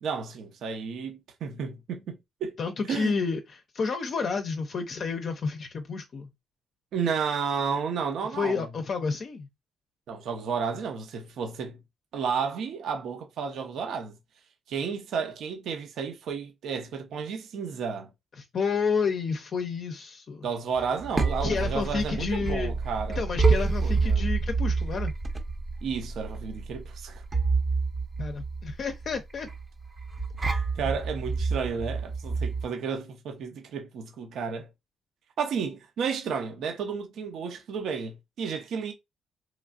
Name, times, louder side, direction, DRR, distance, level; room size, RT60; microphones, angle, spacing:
voice 1, 0.0-2.6 2.8-3.1 6.9-8.7 10.1-11.8 12.1-14.1 14.7-18.1 20.4-23.2 23.8-24.2 25.8-27.2 30.4-34.7 35.4-38.9, right 6 dB, 70° right, 0.6 m, -32 dB
voice 2, 2.6-6.3 8.3-9.5 18.4-20.5 21.4-22.7 23.2-25.1 28.2-29.5, left 5 dB, 55° left, 0.5 m, -30 dB
sound 1, 20.8-32.7, right 4 dB, 30° right, 0.6 m, -28 dB
3.0 x 2.4 x 2.4 m
cardioid pair, 90°, 0 cm